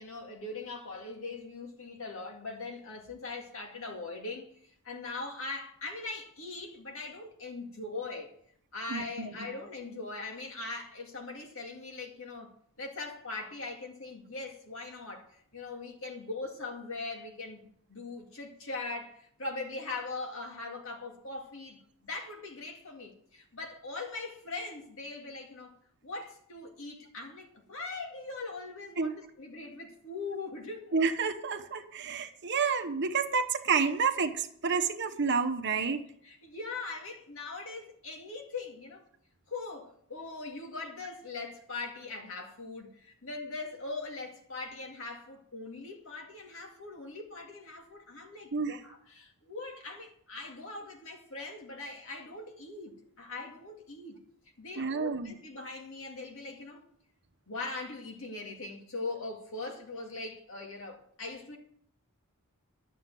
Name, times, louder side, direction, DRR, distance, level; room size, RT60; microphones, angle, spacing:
voice 1, 0.0-8.4 8.7-12.5 12.8-25.8 26.0-30.9 36.2-39.1 39.5-54.2 54.6-56.8 57.5-61.6, left 3 dB, 65° left, 2.3 m, -41 dB
voice 2, 8.9-9.5 29.0-29.1 30.9-36.0 48.5-48.8 54.8-55.3, right 5 dB, 50° right, 1.0 m, -29 dB
11.5 x 7.1 x 7.6 m
head